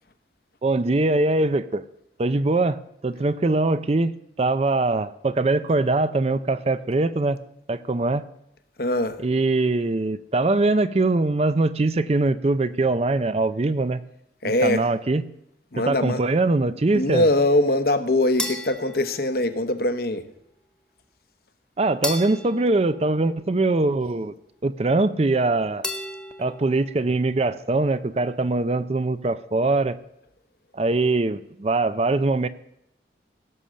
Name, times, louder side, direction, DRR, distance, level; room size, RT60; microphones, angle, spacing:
voice 1, 0.6-1.8 2.2-4.1 4.4-7.4 7.7-8.3 9.2-14.0 14.4-15.2 15.9-17.3 21.8-24.3 24.6-25.9 26.4-30.0 30.7-32.5, right 2 dB, 35° right, 14 dB, 0.5 m, -22 dB
voice 2, 8.8-9.2 14.4-14.8 15.7-16.2 16.9-20.2, left 1 dB, 55° left, 10 dB, 1.0 m, -22 dB
sound 1, 18.4-19.9 22.0-23.9 25.8-27.0, left 2 dB, 5° left, 1.3 m, -35 dB
16.5 x 7.2 x 6.4 m, 0.79 s
head